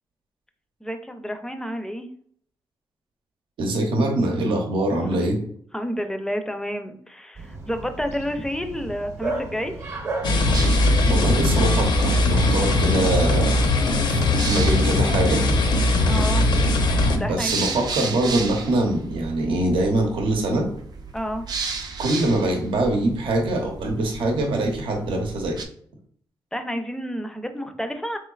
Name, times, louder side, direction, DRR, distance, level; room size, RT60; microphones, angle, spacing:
voice 1, 0.8-2.1 5.1-5.2 5.7-9.7 16.0-16.4 17.2-17.8 21.1-21.4 26.5-28.2, equal, 5° left, 7 dB, 0.4 m, -30 dB
voice 2, 3.6-5.4 11.1-13.6 14.1-15.4 17.2-20.7 22.0-25.6, right 1 dB, 85° right, 2 dB, 0.7 m, -23 dB
Bark, 7.4-13.2, right 2 dB, 35° right, 0.8 m, -35 dB
sound 1, 10.2-17.2, left 2 dB, 65° left, 0.6 m, -20 dB
sound 2, 10.5-25.7, right 4 dB, 55° right, 0.5 m, -35 dB
3.8 x 3.1 x 2.3 m, 0.62 s
cardioid pair, 95°, 8 cm